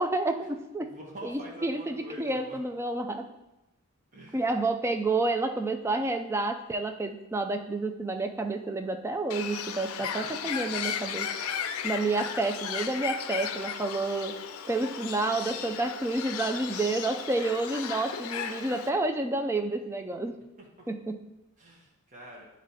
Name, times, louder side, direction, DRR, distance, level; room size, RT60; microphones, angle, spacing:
voice 1, 0.0-0.9 1.2-3.3 4.3-11.3 11.8-14.4 14.7-20.4 20.9-21.2, right 2 dB, 10° right, 6 dB, 0.3 m, -29 dB
voice 2, 0.8-2.6 4.1-4.4 10.0-10.1 10.4-10.7 21.6-22.5, equal, 35° right, -4 dB, 1.3 m, -46 dB
Bird, 9.3-18.9, left 8 dB, 90° left, 0.4 m, -35 dB
8.9 x 3.1 x 4.1 m, 0.97 s
head